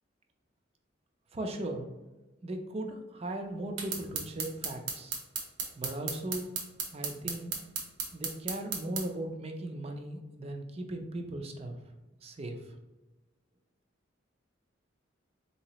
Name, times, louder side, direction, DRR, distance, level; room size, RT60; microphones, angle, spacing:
voice 1, 1.3-1.9 2.4-5.2 5.8-6.5 6.9-7.6 8.1-11.7 12.2-12.6, right 1 dB, 30° right, 4 dB, 0.4 m, -38 dB
sound 1, 3.8-9.1, right 5 dB, 80° right, 0.8 m, -35 dB
3.9 x 2.8 x 2.9 m, 1.1 s
head